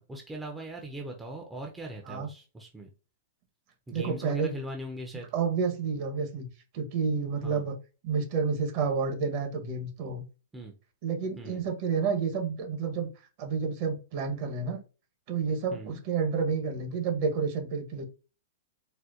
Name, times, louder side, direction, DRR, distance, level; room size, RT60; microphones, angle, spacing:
voice 1, 0.0-2.9 3.9-5.3 7.4-7.7 10.5-10.7 11.4-11.7 15.7-16.0, right 1 dB, 10° right, 1 dB, 0.5 m, -40 dB
voice 2, 3.9-4.5 5.3-6.5 6.7-7.7 8.0-10.2 11.0-13.1 13.4-14.8 15.3-18.1, right 5 dB, 45° right, 4 dB, 0.9 m, -30 dB
4.2 x 2.2 x 2.4 m, 0.32 s
hypercardioid pair, 140°, 0 cm